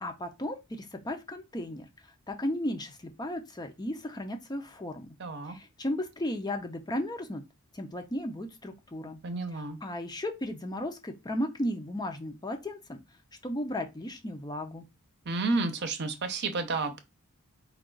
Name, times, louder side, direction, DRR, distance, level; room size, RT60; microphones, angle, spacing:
voice 1, 0.0-1.9 2.3-5.2 5.4-7.4 7.7-9.2 9.8-13.0 13.4-14.9, left 1 dB, 20° left, 0.6 m, -35 dB
voice 2, 5.2-5.6 9.2-9.8 15.3-17.0, right 3 dB, 50° right, 0.7 m, -31 dB
4.7 x 2.3 x 3.8 m
head